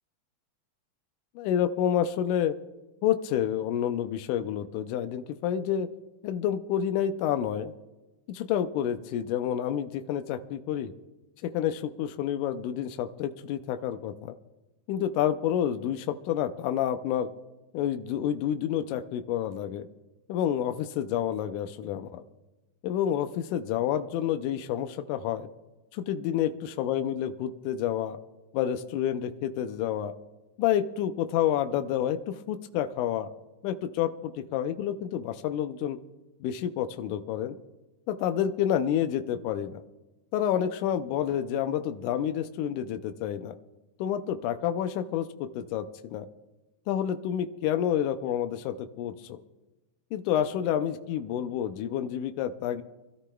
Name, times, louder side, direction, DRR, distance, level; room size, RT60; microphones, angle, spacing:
voice 1, 1.4-2.6 3.0-5.9 6.2-7.7 8.3-10.9 11.4-14.3 14.9-17.3 17.7-19.9 20.3-22.2 22.8-25.5 25.9-28.2 28.5-30.1 30.6-33.3 33.6-36.0 36.4-37.6 38.1-39.8 40.3-43.5 44.0-46.3 46.9-49.4 50.1-52.8, left 10 dB, 85° left, 8 dB, 2.1 m, -29 dB
27.0 x 13.0 x 2.3 m, 1.1 s
omnidirectional pair, 3.6 m